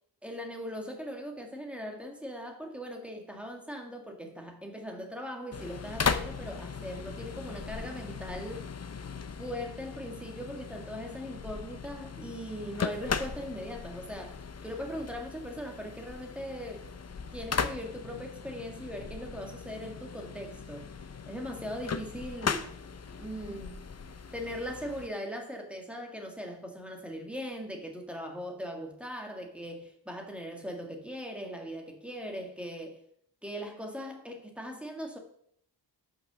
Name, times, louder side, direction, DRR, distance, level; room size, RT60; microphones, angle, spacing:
voice 1, 0.2-8.7 9.4-16.9 17.3-20.9 21.3-22.7 23.2-23.9 24.3-33.0 33.4-35.2, equal, 5° right, 2.1 m, -40 dB
sound 1, 5.5-25.1, left 5 dB, 40° left, 0.7 m, -38 dB
12.5 x 6.1 x 6.3 m
wide cardioid pair, 120°, 42 cm